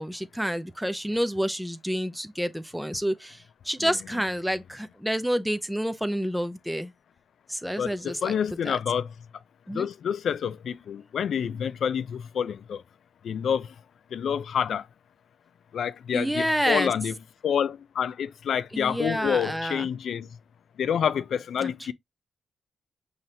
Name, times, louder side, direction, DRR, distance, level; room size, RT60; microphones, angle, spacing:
voice 1, 0.0-6.9 7.5-8.3 8.6-8.8 9.7-9.9 16.1-16.9 18.7-19.9 21.6-21.9, equal, ahead, 0.5 m, -29 dB
voice 2, 7.8-9.1 9.7-12.8 13.2-13.7 14.1-14.9 15.7-17.1 17.4-20.3 20.8-21.9, left 8 dB, 80° left, 0.4 m, -28 dB
5.6 x 3.2 x 2.7 m
wide cardioid pair, 125°, 0 cm